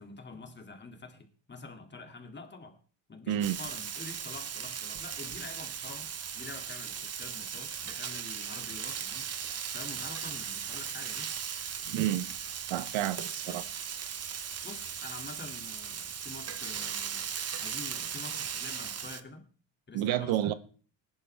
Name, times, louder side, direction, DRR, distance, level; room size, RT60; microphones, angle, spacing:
voice 1, 0.0-2.8 3.1-9.3 9.7-11.4 13.4-13.7 14.6-17.3 17.6-19.4 19.9-20.5, left 3 dB, 25° left, 2.4 m, -47 dB
Frying (food), 3.4-19.2, right 7 dB, 35° right, 0.9 m, -38 dB
voice 2, 11.9-12.3 12.7-13.6 19.9-20.5, right 12 dB, 85° right, 1.0 m, -30 dB
20.0 x 11.0 x 3.4 m
cardioid pair, 125°, 45 cm